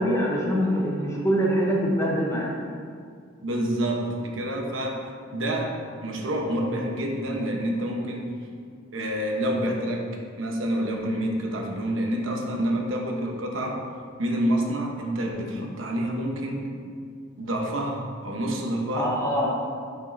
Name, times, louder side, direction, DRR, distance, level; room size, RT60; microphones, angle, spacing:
voice 1, 0.0-2.5 19.0-19.5, equal, 15° left, -3 dB, 0.9 m, -24 dB
voice 2, 3.4-5.8 6.0-8.3 8.9-10.1 10.4-13.8 14.2-16.7 17.4-19.2, right 1 dB, 80° right, 1 dB, 1.0 m, -28 dB
9.6 x 5.5 x 2.7 m, 2.1 s
head